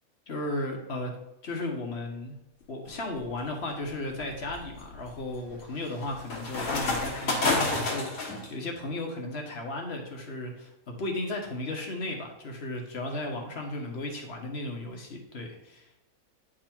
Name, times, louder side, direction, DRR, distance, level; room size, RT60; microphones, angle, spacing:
voice 1, 0.3-1.1 1.4-2.3 2.7-15.9, left 2 dB, 50° left, 2 dB, 1.4 m, -35 dB
sound 1, 2.9-3.3 3.9-8.5, left 2 dB, 70° left, 1.9 m, -30 dB
9.3 x 3.8 x 4.5 m, 0.90 s
omnidirectional pair, 1.5 m